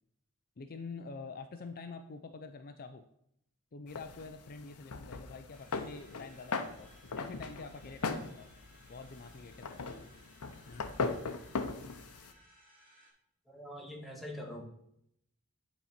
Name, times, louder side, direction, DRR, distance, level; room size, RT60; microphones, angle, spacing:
voice 1, 0.6-3.0 3.7-6.9 7.2-8.5 8.9-10.0 10.7-10.9, left 4 dB, 40° left, 7 dB, 0.5 m, -46 dB
sound 1, 3.9-12.3, left 4 dB, 85° left, 0.8 m, -39 dB
sound 2, 5.5-13.1, right 1 dB, 40° right, 3.0 m, -62 dB
voice 2, 13.4-14.6, left 1 dB, ahead, -1 dB, 1.6 m, -44 dB
9.9 x 4.2 x 5.8 m, 0.75 s
head